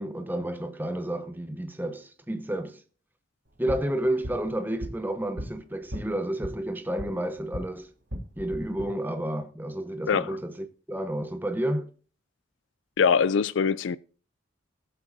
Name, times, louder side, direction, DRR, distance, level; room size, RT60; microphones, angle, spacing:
voice 1, 0.0-2.8 3.6-7.9 8.4-11.9, right 1 dB, 10° right, 0.8 m, -31 dB
sound 1, 3.5-7.7 8.0-8.8, equal, 60° right, 3.0 m, -39 dB
voice 2, 13.0-14.0, left 6 dB, 75° left, 0.4 m, -23 dB
20.0 x 7.7 x 2.6 m
head